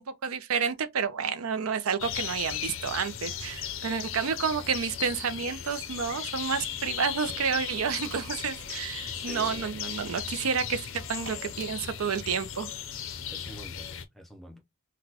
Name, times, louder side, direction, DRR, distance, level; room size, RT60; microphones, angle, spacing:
voice 1, 0.0-12.7, right 6 dB, 85° right, 0.5 m, -30 dB
sound 1, 2.0-14.0, left 9 dB, 65° left, 0.5 m, -37 dB
Drill, 7.0-12.1, right 3 dB, 65° right, 1.9 m, -51 dB
voice 2, 9.0-9.7 13.3-14.6, right 1 dB, ahead, 0.6 m, -46 dB
3.9 x 2.2 x 2.8 m
head